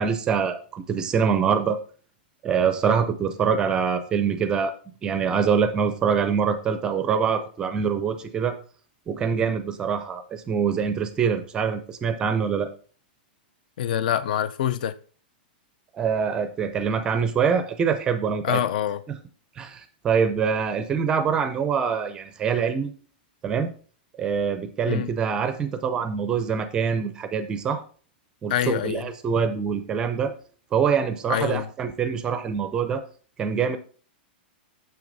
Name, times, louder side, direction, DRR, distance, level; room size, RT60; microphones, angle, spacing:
voice 1, 0.0-1.8 2.4-4.7 5.0-8.6 9.1-12.7 15.9-18.6 19.1-19.2 19.6-22.9 23.4-23.7 24.2-27.8 28.4-30.3 30.7-33.0 33.4-33.8, right 6 dB, 15° right, 0.5 m, -24 dB
voice 2, 13.8-14.9 18.4-19.0 24.9-25.1 28.5-29.1 31.3-31.7, left 10 dB, 55° left, 0.5 m, -25 dB
7.1 x 6.0 x 4.0 m
supercardioid pair, 170°, 6 cm